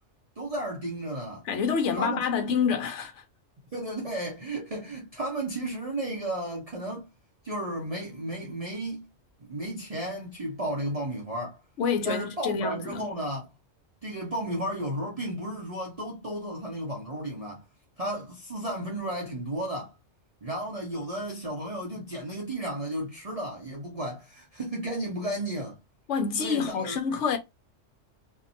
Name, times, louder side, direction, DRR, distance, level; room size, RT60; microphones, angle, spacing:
voice 1, 0.4-1.4 1.9-2.2 2.5-2.6 3.7-7.1 7.4-9.1 9.4-11.6 12.0-13.5 14.0-17.6 18.0-19.9 20.4-25.8 26.4-27.2, right 1 dB, 40° right, 0.5 m, -33 dB
voice 2, 1.5-3.2 11.8-13.0 26.1-27.4, left 6 dB, 70° left, 1.0 m, -27 dB
2.8 x 2.1 x 2.5 m
omnidirectional pair, 1.3 m